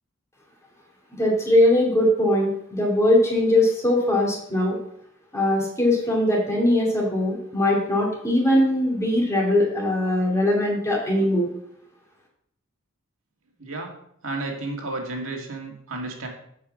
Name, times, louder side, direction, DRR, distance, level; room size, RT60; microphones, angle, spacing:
voice 1, 1.2-4.8 5.3-11.5, left 1 dB, 15° left, -2 dB, 2.7 m, -21 dB
voice 2, 13.6-13.9 14.2-16.3, right 2 dB, 75° right, 1 dB, 1.9 m, -32 dB
8.1 x 5.1 x 7.3 m, 0.70 s
head